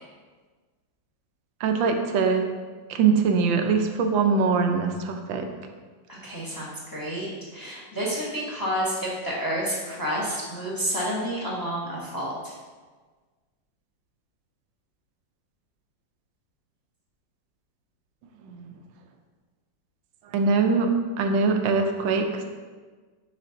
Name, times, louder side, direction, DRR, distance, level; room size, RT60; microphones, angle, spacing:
voice 1, 1.6-2.4 2.9-5.5 18.4-18.7 20.3-20.9 21.2-22.3, right 5 dB, 85° right, 5 dB, 1.4 m, -22 dB
voice 2, 6.1-12.5, equal, 15° left, -5 dB, 0.8 m, -30 dB
5.0 x 4.9 x 3.9 m, 1.4 s
omnidirectional pair, 2.0 m